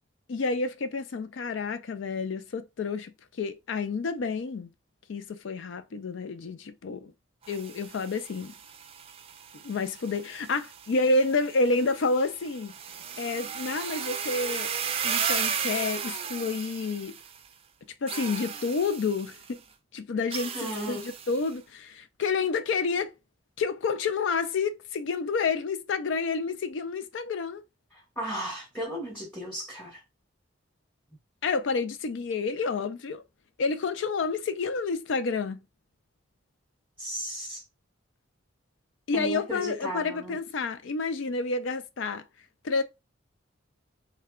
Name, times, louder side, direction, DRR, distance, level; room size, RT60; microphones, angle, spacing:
voice 1, 0.3-3.1 3.4-4.7 5.1-7.1 7.5-8.6 9.6-12.7 13.2-14.7 15.0-17.2 18.0-19.6 19.9-23.1 23.6-27.6 31.4-33.2 33.6-35.6 39.1-42.2 42.6-42.8, left 4 dB, 70° left, 0.4 m, -29 dB
sound 1, 7.4-17.5 18.1-19.5 20.3-21.5, right 7 dB, 30° right, 0.4 m, -35 dB
voice 2, 20.5-21.1 28.2-30.0 37.0-37.6 39.1-40.4, equal, 5° left, 0.9 m, -35 dB
3.3 x 2.2 x 3.6 m
head